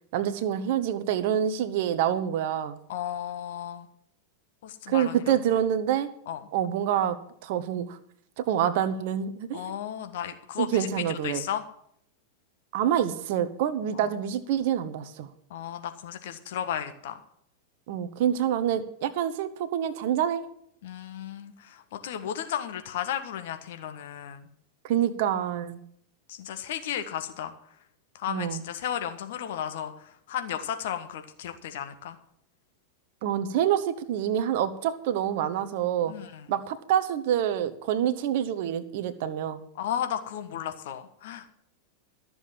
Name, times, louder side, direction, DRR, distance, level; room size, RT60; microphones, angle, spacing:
voice 1, 0.1-2.8 4.9-6.1 6.5-8.0 8.4-9.8 10.6-11.4 12.7-15.3 17.9-20.5 24.8-25.8 28.3-28.6 33.2-36.1 36.5-39.6, right 10 dB, 50° right, 13 dB, 1.1 m, -27 dB
voice 2, 2.9-3.9 4.6-5.3 6.3-6.4 9.5-11.6 14.0-14.2 15.5-17.2 20.8-24.5 26.3-27.5 28.1-32.2 36.0-36.5 39.7-41.5, left 9 dB, 55° left, 8 dB, 1.4 m, -34 dB
13.5 x 7.1 x 7.6 m, 0.69 s
figure-of-eight pair, 90°, 0 cm